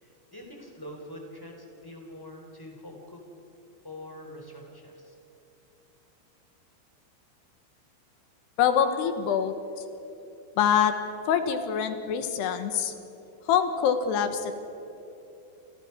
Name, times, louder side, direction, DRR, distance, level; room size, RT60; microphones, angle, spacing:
voice 1, 0.0-3.2 3.8-5.1, left 1 dB, 5° left, 1 dB, 3.1 m, -44 dB
voice 2, 8.6-9.5 10.6-10.9 11.3-12.9 13.5-14.5, left 8 dB, 70° left, 8 dB, 3.0 m, -24 dB
28.0 x 28.0 x 6.0 m, 2.9 s
omnidirectional pair, 5.8 m